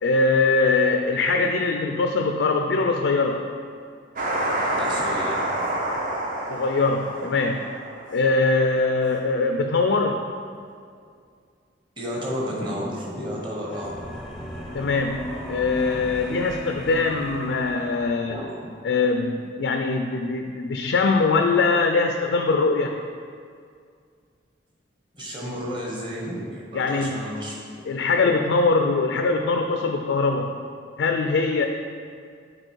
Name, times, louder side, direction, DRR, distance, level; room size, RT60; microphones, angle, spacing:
voice 1, 0.0-3.5 6.5-7.6 8.1-10.2 14.7-18.4 18.8-23.0 26.7-27.3 27.8-30.6 31.0-31.7, left 3 dB, 80° left, 4 dB, 0.4 m, -22 dB
sound 1, 4.2-8.4, right 1 dB, 45° right, 0.9 m, -28 dB
voice 2, 4.8-5.7 7.1-7.3 12.0-14.0 18.3-18.7 25.1-27.5, equal, 25° right, -3 dB, 1.3 m, -32 dB
sound 2, 13.7-18.4, equal, 5° left, 0.7 m, -35 dB
7.8 x 4.1 x 4.5 m, 2.2 s
head